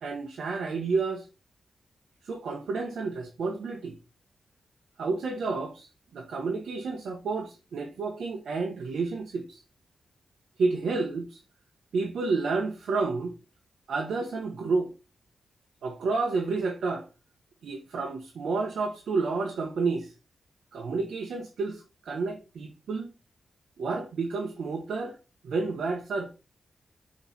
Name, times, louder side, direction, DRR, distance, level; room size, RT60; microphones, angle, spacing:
voice 1, 0.0-1.3 2.2-3.9 5.0-9.6 10.6-11.4 11.9-13.3 13.9-14.9 15.8-17.1 17.6-20.1 20.7-23.1 23.8-25.2 25.4-26.3, right 4 dB, 85° right, 1.4 m, -30 dB
6.6 x 4.4 x 4.5 m
cardioid pair, 75°, 0 cm